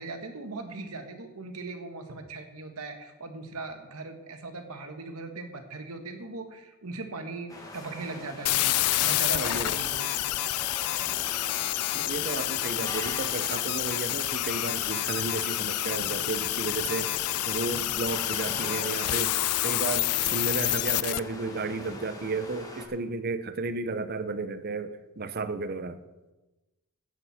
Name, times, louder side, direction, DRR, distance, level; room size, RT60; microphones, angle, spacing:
voice 1, 0.0-10.1, right 3 dB, 80° right, 5 dB, 1.6 m, -39 dB
sound 1, 7.5-22.9, left 1 dB, 15° left, 1.7 m, -42 dB
sound 2, 8.5-21.2, left 16 dB, 90° left, 0.4 m, -28 dB
voice 2, 9.3-9.8 11.9-17.2 17.5-19.4 19.6-26.0, right 3 dB, 45° right, 12 dB, 0.8 m, -33 dB
14.5 x 9.2 x 4.3 m, 1.1 s
head